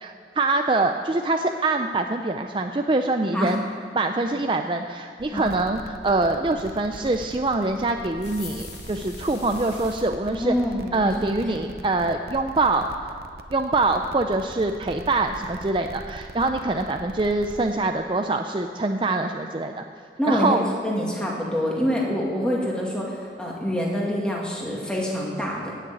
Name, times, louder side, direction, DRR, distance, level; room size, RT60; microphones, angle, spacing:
voice 1, 0.0-3.6 3.9-10.6 10.9-13.1 13.5-19.8 20.3-20.6, right 2 dB, 30° right, 5 dB, 0.5 m, -24 dB
sound 1, 5.2-17.7, right 2 dB, 60° right, 0.7 m, -42 dB
sound 2, 8.2-10.0, left 5 dB, 80° left, 2.3 m, -43 dB
voice 2, 10.3-11.6 20.2-25.7, equal, 5° left, -3 dB, 2.2 m, -26 dB
15.0 x 6.6 x 9.0 m, 2.4 s
head